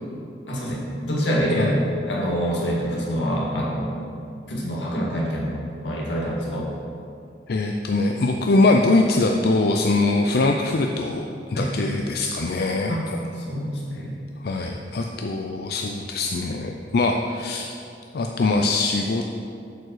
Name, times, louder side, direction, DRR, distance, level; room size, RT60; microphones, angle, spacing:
voice 1, 0.5-1.8 2.1-4.0 4.5-5.5 5.8-6.7 11.5-11.7 12.9-13.0 13.5-14.1, equal, 90° left, -4 dB, 2.1 m, -25 dB
voice 2, 7.5-13.2 14.4-17.8 18.1-19.2, left 2 dB, 60° left, 2 dB, 0.5 m, -22 dB
7.7 x 5.2 x 6.5 m, 2.5 s
head